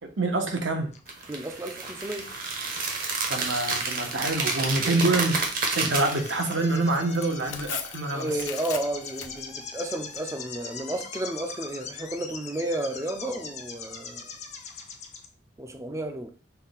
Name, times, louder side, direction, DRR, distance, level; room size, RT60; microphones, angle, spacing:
voice 1, 0.0-0.9 3.3-8.3, right 2 dB, 70° right, 0.9 m, -26 dB
sound 1, 0.9-15.2, left 5 dB, 35° left, 0.6 m, -42 dB
sound 2, 1.1-6.5, right 4 dB, 45° right, 0.9 m, -30 dB
voice 2, 1.3-2.3 4.9-5.0 8.1-14.3 15.6-16.3, right 1 dB, 15° right, 0.5 m, -32 dB
Tearing, 2.0-10.2, left 8 dB, 80° left, 0.6 m, -43 dB
5.6 x 2.2 x 4.0 m
head